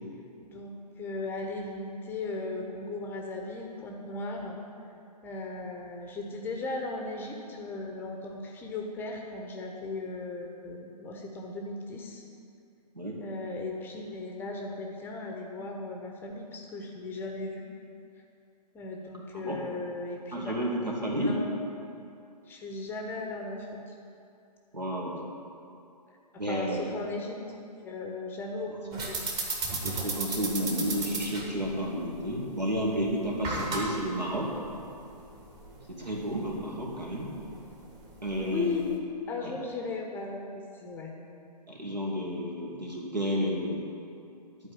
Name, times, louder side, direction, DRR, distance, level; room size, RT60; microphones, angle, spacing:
voice 1, 0.4-4.6 5.2-12.2 13.2-17.6 18.7-20.5 21.1-21.5 22.5-23.9 26.3-27.4 27.8-29.2 38.4-38.9 39.3-41.2, left 3 dB, 10° left, 1 dB, 0.7 m, -37 dB
voice 2, 20.3-21.3 24.7-25.1 26.4-26.8 29.7-34.5 35.9-37.3 38.2-38.8 39.4-39.5 41.7-43.9, equal, 85° right, -3 dB, 2.5 m, -31 dB
sound 1, 28.9-39.0, right 2 dB, 15° right, 1.1 m, -37 dB
10.5 x 4.7 x 7.8 m, 2.6 s
figure-of-eight pair, 130°, 21 cm